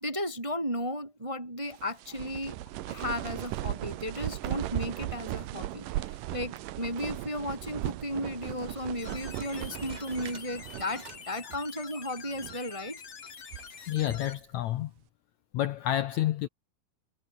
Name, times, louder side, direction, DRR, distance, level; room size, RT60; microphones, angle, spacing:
voice 1, 0.0-2.6 2.9-13.0, left 1 dB, 15° right, 1.3 m, -35 dB
sound 1, 1.7-11.2 11.5-11.6 12.2-12.7 13.2-14.3, right 15 dB, 70° right, 2.3 m, -37 dB
sound 2, 9.0-14.3, left 7 dB, 60° left, 4.9 m, -46 dB
sound 3, 9.3-11.4 11.6-12.0 12.5-12.6 13.3-13.7, right 3 dB, 50° right, 0.5 m, -51 dB
voice 2, 13.9-14.9 15.5-16.5, left 13 dB, 90° left, 1.6 m, -29 dB
omnidirectional pair, 4.4 m